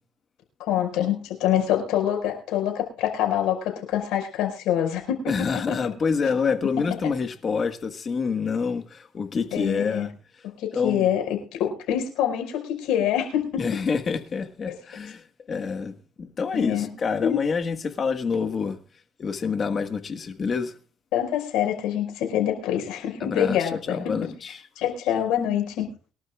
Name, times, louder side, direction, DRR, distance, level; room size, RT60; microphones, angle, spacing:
voice 1, 0.6-5.5 9.5-10.1 10.4-13.8 14.7-14.8 16.5-16.9 17.2-17.4 21.1-24.3 24.8-25.9, left 10 dB, 85° left, 5.1 m, -25 dB
voice 2, 5.3-10.1 10.7-11.1 13.6-18.8 19.2-20.7 23.2-24.6, left 5 dB, 35° left, 1.5 m, -27 dB
23.5 x 12.0 x 2.4 m
cardioid pair, 115°, 0 cm